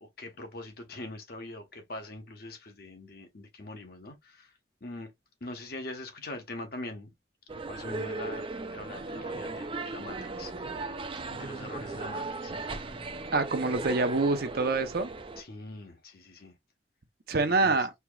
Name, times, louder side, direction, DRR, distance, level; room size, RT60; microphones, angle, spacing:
voice 1, 0.0-4.5 4.8-5.1 5.4-7.1 7.7-10.9 11.3-12.9 15.4-16.5 17.4-17.9, left 2 dB, 60° left, 1.1 m, -43 dB
sound 1, 7.5-15.4, right 3 dB, 30° right, 0.5 m, -37 dB
voice 2, 13.3-15.1 17.3-17.9, right 3 dB, 60° right, 0.8 m, -26 dB
4.4 x 2.9 x 2.3 m
head